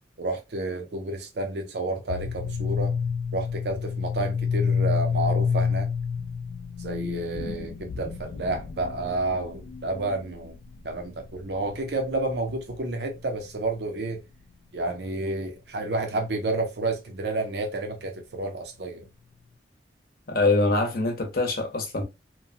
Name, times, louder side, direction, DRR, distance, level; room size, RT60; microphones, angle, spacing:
voice 1, 0.2-2.9 3.3-5.9 6.8-10.5 10.8-14.2 14.7-19.1, right 2 dB, 65° right, 0.6 m, -30 dB
sound 1, 2.1-13.3, left 6 dB, 75° left, 0.3 m, -29 dB
voice 2, 20.3-22.0, left 2 dB, 50° left, 0.7 m, -24 dB
2.9 x 2.2 x 2.5 m
head